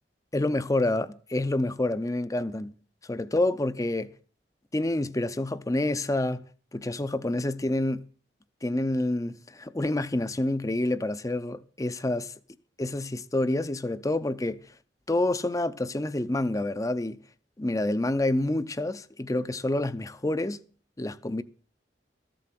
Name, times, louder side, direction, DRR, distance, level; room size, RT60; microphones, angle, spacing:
voice 1, 0.3-2.7 3.1-4.1 4.7-6.4 6.7-8.0 8.6-12.2 12.8-14.6 15.1-17.2 17.6-20.6 21.0-21.4, left 1 dB, 20° left, 0.6 m, -28 dB
14.0 x 7.7 x 7.6 m
head